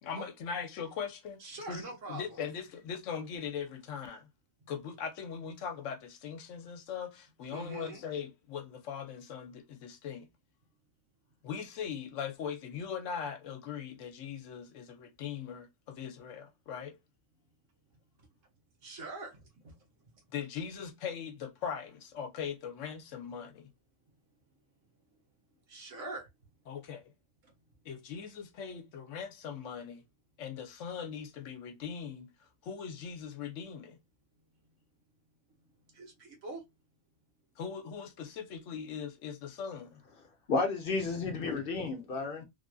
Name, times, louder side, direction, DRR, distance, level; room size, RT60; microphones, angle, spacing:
voice 1, 0.0-1.4 1.7-4.3 4.7-10.3 11.4-16.9 20.3-23.7 26.7-27.1 27.8-30.0 30.4-32.3 32.6-34.0 37.6-40.0, left 7 dB, 80° left, 1.0 m, -40 dB
voice 2, 1.4-2.4 7.5-8.0 18.8-19.8 25.7-26.3 35.9-36.6, right 2 dB, 75° right, 1.5 m, -43 dB
voice 3, 40.5-42.4, left 3 dB, 55° left, 0.8 m, -32 dB
3.2 x 2.5 x 2.2 m
omnidirectional pair, 1.3 m